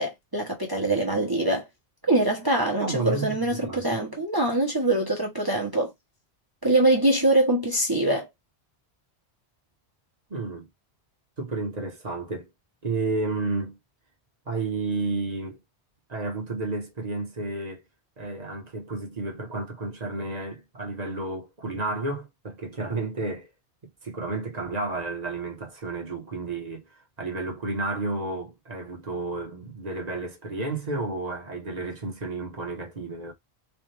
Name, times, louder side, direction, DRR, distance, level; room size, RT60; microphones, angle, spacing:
voice 1, 0.0-1.6 2.1-5.9 6.6-8.3, right 1 dB, 20° right, 0.9 m, -23 dB
voice 2, 2.8-4.0 10.3-10.7 11.4-12.5 12.8-13.8 14.5-15.6 16.1-17.8 18.2-23.5 24.0-26.8 27.2-33.3, right 3 dB, 40° right, 1.2 m, -31 dB
4.1 x 2.5 x 3.2 m
omnidirectional pair, 1.1 m